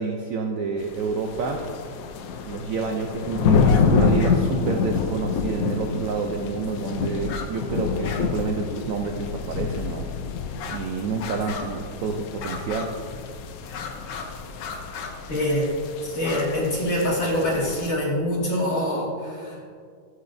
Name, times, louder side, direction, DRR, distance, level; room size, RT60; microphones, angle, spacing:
voice 1, 0.0-1.6 2.4-10.1 10.7-12.9, right 4 dB, 75° right, 3 dB, 0.7 m, -28 dB
sound 1, 0.8-17.9, left 5 dB, 70° left, 0.8 m, -27 dB
sound 2, 3.6-3.9 4.2-4.4 6.0-6.1 7.2-7.5 7.8-8.3 8.6-8.7 9.4-9.5 10.5-10.9 11.2-11.9 12.4-13.1 13.6-14.3 14.6-15.1 16.1-16.5, left 5 dB, 85° left, 1.6 m, -35 dB
voice 2, 15.3-15.7 16.0-19.7, left 1 dB, 45° left, -6 dB, 2.4 m, -25 dB
12.0 x 8.0 x 2.6 m, 2.2 s
omnidirectional pair, 2.1 m